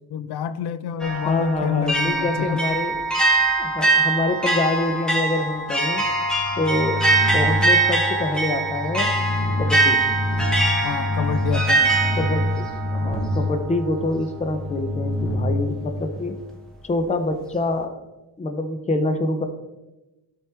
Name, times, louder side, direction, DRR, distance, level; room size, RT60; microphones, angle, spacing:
voice 1, 0.1-2.6 10.8-12.3, left 8 dB, 70° left, 13 dB, 0.5 m, -28 dB
sound 1, 1.0-14.0, right 3 dB, ahead, 1.0 m, -23 dB
voice 2, 1.1-3.0 3.6-6.1 6.6-9.1 9.6-10.0 12.2-12.7 12.9-16.4 16.8-18.0 18.4-19.5, left 2 dB, 20° left, 8 dB, 0.5 m, -26 dB
sound 2, 6.0-16.6, left 1 dB, 35° left, 1.1 m, -27 dB
11.5 x 4.7 x 3.3 m, 1.0 s
wide cardioid pair, 155°, 40 cm